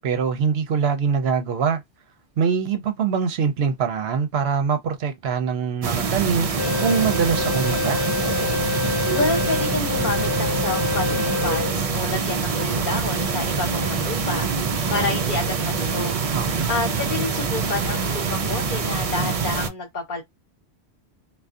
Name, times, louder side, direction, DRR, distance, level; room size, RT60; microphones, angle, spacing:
voice 1, 0.0-1.8 2.4-6.5 6.8-8.0 16.3-16.7, right 6 dB, 70° right, 0.8 m, -23 dB
sound 1, 5.8-19.7, right 5 dB, 55° right, 0.4 m, -25 dB
sound 2, 6.6-15.8 16.3-16.4 17.0-17.2, left 6 dB, 75° left, 0.9 m, -29 dB
sound 3, 8.8-15.3, right 2 dB, 35° right, 1.1 m, -45 dB
voice 2, 9.1-16.1 16.7-20.2, left 3 dB, 50° left, 1.1 m, -29 dB
2.4 x 2.3 x 2.5 m
omnidirectional pair, 1.1 m